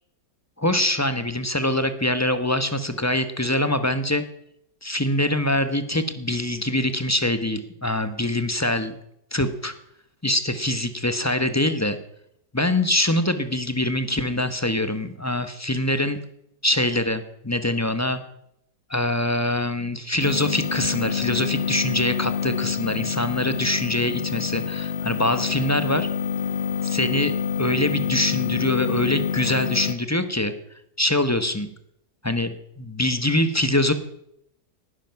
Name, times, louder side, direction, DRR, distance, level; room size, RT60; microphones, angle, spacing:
voice 1, 0.6-4.2 4.8-9.0 9.3-9.7 10.2-12.0 12.5-16.2 16.6-18.2 18.9-26.1 26.8-30.5 31.0-31.7 32.2-33.9, left 1 dB, 15° left, 10 dB, 0.7 m, -24 dB
sound 1, 20.2-29.9, left 7 dB, 40° left, 1.4 m, -27 dB
18.5 x 11.5 x 5.8 m, 0.76 s
omnidirectional pair, 1.8 m